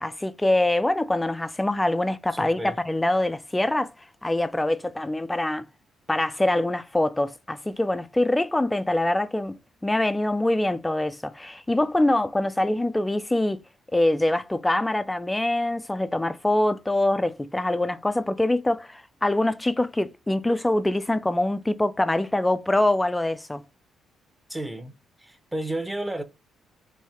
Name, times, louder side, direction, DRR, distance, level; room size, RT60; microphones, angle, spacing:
voice 1, 0.0-3.9 4.2-5.6 6.1-13.6 13.9-23.6, left 1 dB, 10° left, 0.4 m, -24 dB
voice 2, 2.3-2.8 24.5-24.9 25.2-26.2, right 1 dB, 10° right, 0.8 m, -32 dB
3.4 x 2.7 x 4.2 m
cardioid pair, 90°, 0 cm